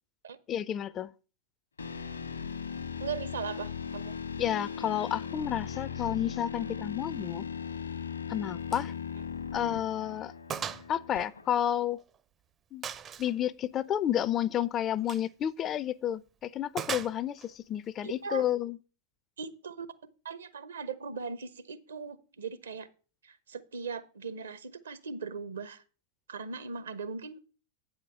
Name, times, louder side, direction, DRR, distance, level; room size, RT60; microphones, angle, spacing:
voice 1, 0.5-1.1 4.4-7.5 8.3-8.9 9.5-10.3 10.9-12.0 12.7-12.8 13.2-18.8, left 10 dB, 30° left, 0.4 m, -31 dB
sound 1, 1.8-11.8, left 7 dB, 75° left, 1.0 m, -38 dB
voice 2, 3.0-4.2 9.2-9.3 18.0-18.4 19.4-19.9 20.2-22.9 23.2-25.8 26.3-27.4, right 5 dB, 70° right, 0.9 m, -39 dB
Gunshot gunfire, 8.7-8.9 9.3-9.4 9.8-9.9 10.5-10.9 11.2-12.2 12.8-13.3 15.0-15.3 16.8-17.5, right 8 dB, 25° right, 0.5 m, -38 dB
8.7 x 5.0 x 7.1 m
figure-of-eight pair, 90°, 0 cm